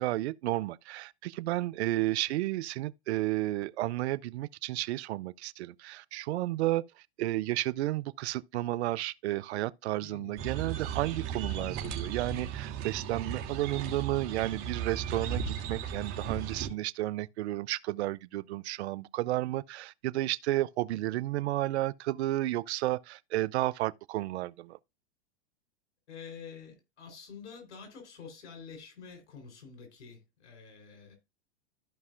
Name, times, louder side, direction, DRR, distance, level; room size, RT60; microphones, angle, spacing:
voice 1, 0.0-6.8 7.2-24.8, right 16 dB, 70° right, 0.5 m, -32 dB
voice 2, 10.0-10.4 26.1-31.2, left 5 dB, 80° left, 4.0 m, -48 dB
sound 1, 10.4-16.7, right 7 dB, 50° right, 2.8 m, -36 dB
14.0 x 5.3 x 2.5 m
hypercardioid pair, 115°, 34 cm